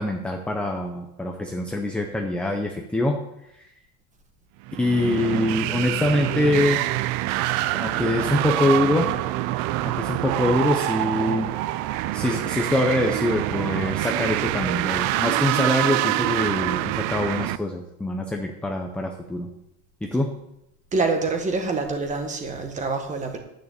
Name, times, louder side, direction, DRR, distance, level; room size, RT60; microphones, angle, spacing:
voice 1, 0.0-3.1 4.8-6.8 7.7-9.1 9.8-11.5 12.1-19.5 20.0-20.3, left 1 dB, 5° left, 2 dB, 0.5 m, -24 dB
sound 1, 4.7-17.6, right 16 dB, 50° right, 0.4 m, -26 dB
voice 2, 20.9-23.4, right 3 dB, 20° right, 5 dB, 1.4 m, -26 dB
9.7 x 6.6 x 8.5 m, 0.85 s
cardioid pair, 170°, 40 cm